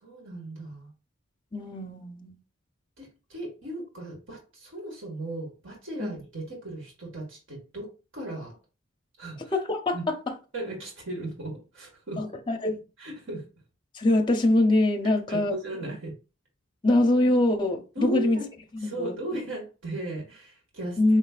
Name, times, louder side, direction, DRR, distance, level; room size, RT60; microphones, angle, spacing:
voice 1, 0.0-0.9 3.0-7.9 8.1-8.5 9.2-9.4 9.9-10.1 10.5-12.2 13.0-13.4 15.3-16.1 17.9-18.5 18.8-21.0, right 1 dB, 70° right, 1.7 m, -36 dB
voice 2, 1.5-2.3 6.0-6.1 9.5-10.2 12.2-12.8 13.9-15.5 16.8-18.4 18.8-19.1 21.0-21.2, left 2 dB, 20° left, 0.6 m, -23 dB
5.1 x 3.2 x 2.4 m
head